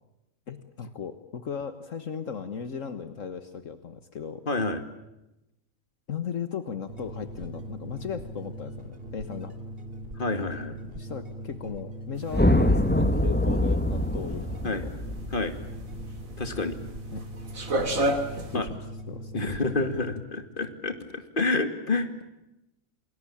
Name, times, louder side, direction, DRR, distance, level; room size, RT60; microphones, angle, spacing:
voice 1, 0.5-4.4 6.1-9.5 10.9-14.9 17.1-17.2 18.5-19.5, left 7 dB, 70° left, 10 dB, 1.8 m, -36 dB
voice 2, 4.5-4.8 10.2-10.8 14.6-14.8 15.3-15.5 16.4-16.8 18.5-18.7 19.3-22.1, left 3 dB, 40° left, 8 dB, 2.6 m, -28 dB
sound 1, 6.9-20.1, right 1 dB, 45° right, 3.0 m, -40 dB
sound 2, 12.2-18.6, right 1 dB, 80° right, 3.2 m, -31 dB
sound 3, 12.3-16.7, left 1 dB, 5° left, 1.5 m, -24 dB
29.5 x 21.0 x 8.7 m, 0.92 s
omnidirectional pair, 1.4 m